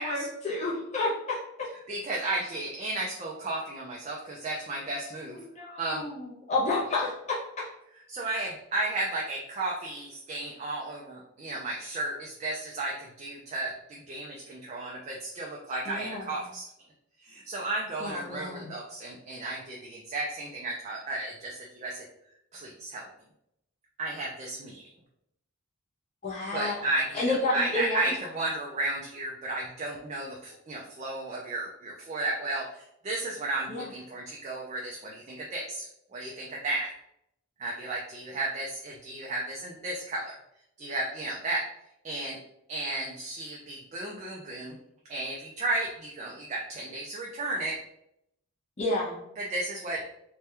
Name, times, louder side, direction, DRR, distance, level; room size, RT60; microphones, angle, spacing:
voice 1, 0.0-1.7 5.5-7.7 15.9-16.3 18.0-18.7 26.2-26.8 27.1-28.0 33.7-33.9 48.8-49.2, left 2 dB, 30° left, -5 dB, 0.6 m, -30 dB
voice 2, 1.9-5.4 5.8-6.0 8.1-16.7 17.2-22.0 22.5-23.1 24.0-24.8 26.5-35.9 36.1-36.9 37.6-40.3 40.8-41.7 42.0-42.4 42.7-44.7 45.1-47.8 49.4-50.0, right 2 dB, 30° right, -3 dB, 0.3 m, -33 dB
3.3 x 2.2 x 2.8 m, 0.77 s
head